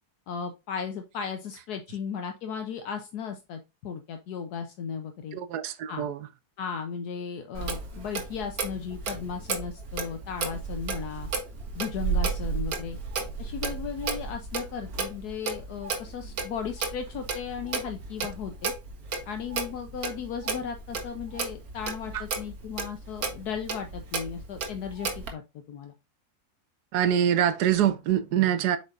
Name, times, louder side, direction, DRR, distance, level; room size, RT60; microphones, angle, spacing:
voice 1, 0.3-5.4 5.9-6.1 6.6-11.3 11.7-13.0 13.4-18.7 19.3-25.4 25.7-25.9, left 7 dB, 75° left, 1.3 m, -36 dB
voice 2, 5.3-6.2 22.1-22.2 26.9-28.8, right 10 dB, 80° right, 1.3 m, -24 dB
Clock, 7.5-25.3, right 5 dB, 65° right, 1.8 m, -33 dB
8.0 x 5.4 x 2.5 m
omnidirectional pair, 1.7 m